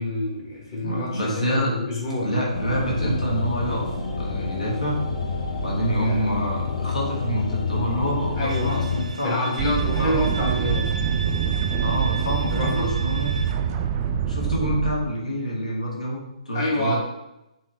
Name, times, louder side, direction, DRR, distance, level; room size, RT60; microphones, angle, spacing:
voice 1, 0.0-2.3 6.0-6.3 8.4-8.8 9.2-10.8 12.5-12.9 16.5-16.9, left 1 dB, 35° left, -3 dB, 1.1 m, -27 dB
voice 2, 0.8-1.8 2.2-5.0 5.6-9.4 10.0-10.6 11.8-13.3 14.3-17.0, equal, 80° left, -4 dB, 1.5 m, -27 dB
sound 1, 2.5-9.0, left 4 dB, 60° left, 0.8 m, -28 dB
Bowed string instrument, 8.5-13.5, right 4 dB, 80° right, 0.6 m, -36 dB
sound 2, 9.6-15.0, right 8 dB, 30° right, 0.4 m, -25 dB
4.6 x 2.9 x 3.3 m, 0.91 s
figure-of-eight pair, 130°, 4 cm